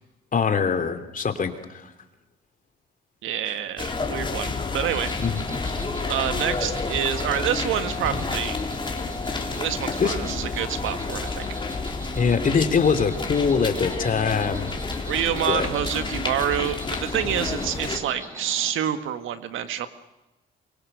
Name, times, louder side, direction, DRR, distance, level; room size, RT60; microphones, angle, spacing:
voice 1, 0.3-1.9 3.5-3.6 5.2-5.4 10.0-10.2 12.2-14.7 15.0-15.1 15.5-15.7, left 5 dB, 45° left, 8 dB, 2.9 m, -23 dB
voice 2, 3.2-5.1 6.1-8.6 9.5-11.6 15.1-19.9, right 10 dB, 80° right, 9 dB, 1.7 m, -27 dB
sound 1, 3.8-18.0, left 3 dB, 25° left, 3.8 m, -30 dB
Insect, 4.8-18.7, equal, 15° right, 7.1 m, -42 dB
24.0 x 23.5 x 6.7 m, 0.99 s
cardioid pair, 90°, 20 cm